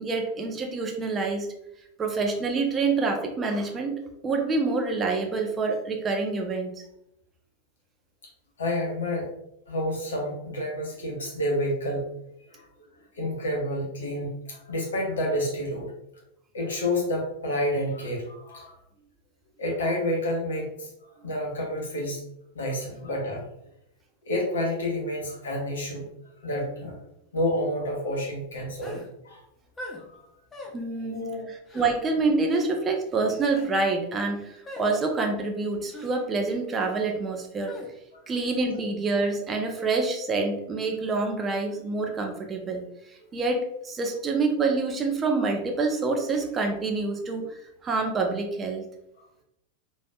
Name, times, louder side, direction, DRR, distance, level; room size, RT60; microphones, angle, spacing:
voice 1, 0.0-1.5 2.0-3.9 4.2-6.8 21.2-21.3 30.7-31.2 31.5-37.8 38.3-47.5 47.8-48.9, right 3 dB, 20° right, 3 dB, 0.6 m, -27 dB
voice 2, 8.6-9.3 9.7-12.1 12.5-12.6 13.2-15.9 16.5-18.7 19.6-20.9 21.2-22.2 22.5-23.4 24.3-26.1 26.4-27.0 27.3-29.4 30.1-30.2 31.1-31.5 38.1-38.2, left 1 dB, 65° left, -1 dB, 1.2 m, -29 dB
sound 1, 28.8-29.1 29.8-30.0 30.5-30.8 31.7-31.9 32.5-32.7 33.4-33.7 34.7-34.9 35.9-36.1 37.7-37.9, left 1 dB, 15° left, 0.9 m, -40 dB
5.1 x 3.1 x 2.3 m, 0.80 s
figure-of-eight pair, 90°, 0 cm